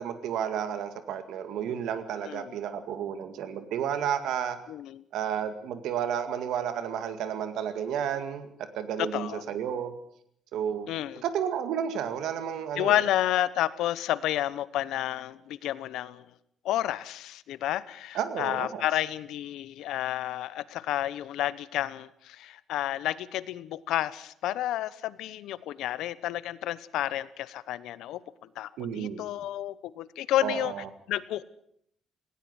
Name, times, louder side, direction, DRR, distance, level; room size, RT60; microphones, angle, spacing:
voice 1, 0.0-4.6 5.1-8.5 8.7-9.9 10.5-10.9 11.2-13.0 18.1-18.8 28.8-29.2 30.4-30.9, right 8 dB, 80° right, 10 dB, 2.1 m, -32 dB
voice 2, 2.2-2.5 4.7-5.0 9.0-9.4 10.9-11.2 12.8-16.2 16.6-28.2 28.6-30.7 31.1-31.5, left 13 dB, 85° left, 17 dB, 1.0 m, -30 dB
19.0 x 18.0 x 8.2 m, 0.69 s
cardioid pair, 175°, 0 cm